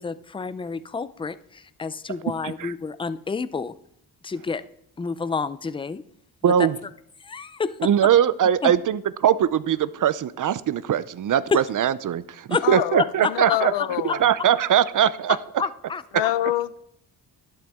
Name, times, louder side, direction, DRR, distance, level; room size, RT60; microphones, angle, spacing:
voice 1, 0.0-3.7 4.2-4.6 5.0-6.0 7.2-7.8 8.6-8.7 11.5-11.6 12.5-12.6 13.5-13.6 14.1-14.2 15.6-16.3, left 4 dB, 15° left, 15 dB, 0.4 m, -29 dB
voice 2, 6.4-6.8 7.8-13.7 14.2-15.4, right 9 dB, 50° right, 17 dB, 0.5 m, -21 dB
voice 3, 12.6-13.0 13.3-14.2 16.1-16.8, left 13 dB, 85° left, 15 dB, 0.7 m, -25 dB
12.0 x 11.0 x 3.5 m, 0.72 s
cardioid pair, 115°, 42 cm